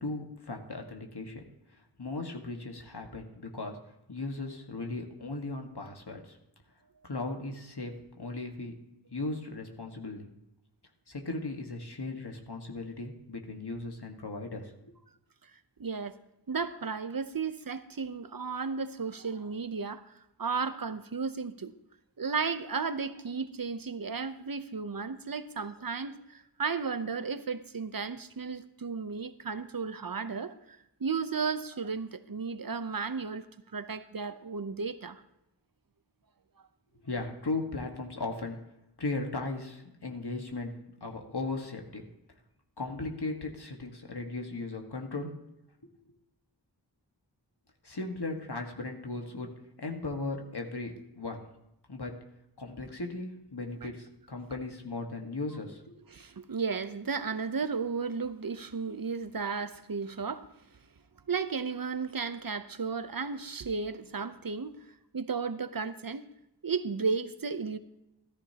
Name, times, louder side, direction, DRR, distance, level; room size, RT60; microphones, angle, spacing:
voice 1, 0.0-1.4 2.0-3.8 4.1-6.4 7.0-8.7 9.1-10.3 11.1-14.9 37.0-38.6 39.0-40.7 41.0-42.0 42.8-45.3 47.8-49.5 49.8-51.4 51.9-52.1 52.6-56.0, left 3 dB, 60° left, 1.6 m, -37 dB
voice 2, 15.8-16.1 16.5-20.1 20.4-21.7 22.2-30.5 31.0-33.5 33.7-35.2 53.8-53.9 56.1-60.5 61.3-64.8 65.1-66.2 66.6-67.8, right 5 dB, 50° right, 0.7 m, -34 dB
14.0 x 13.0 x 2.9 m
wide cardioid pair, 45°, 44 cm